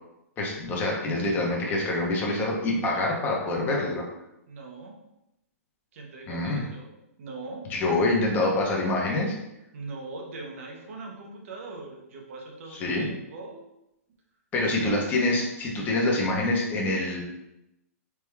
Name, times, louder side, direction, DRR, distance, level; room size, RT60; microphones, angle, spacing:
voice 1, 0.4-4.0 6.3-6.6 7.7-9.3 12.8-13.1 14.5-17.2, left 2 dB, 20° left, -2 dB, 0.8 m, -26 dB
voice 2, 2.8-3.2 4.5-4.9 5.9-6.9 7.2-7.7 9.7-13.6, right 3 dB, 55° right, 0 dB, 0.9 m, -41 dB
3.4 x 2.2 x 3.2 m, 0.87 s
hypercardioid pair, 140°, 8 cm